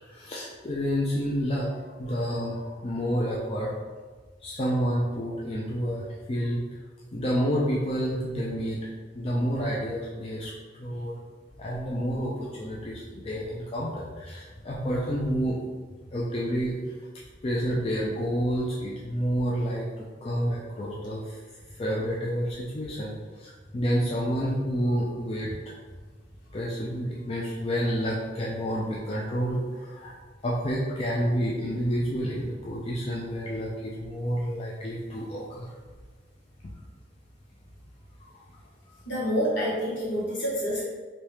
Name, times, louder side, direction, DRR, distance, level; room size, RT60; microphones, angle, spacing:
voice 1, 0.1-3.7 4.4-6.6 7.1-8.8 9.1-10.5 10.8-11.1 11.6-15.6 16.1-16.8 17.4-21.4 21.8-25.5 26.5-30.1 30.4-35.7 38.2-38.3, equal, 35° left, -5 dB, 0.4 m, -29 dB
voice 2, 39.1-40.8, equal, 70° left, -7 dB, 1.4 m, -28 dB
3.0 x 2.7 x 3.3 m, 1.4 s
head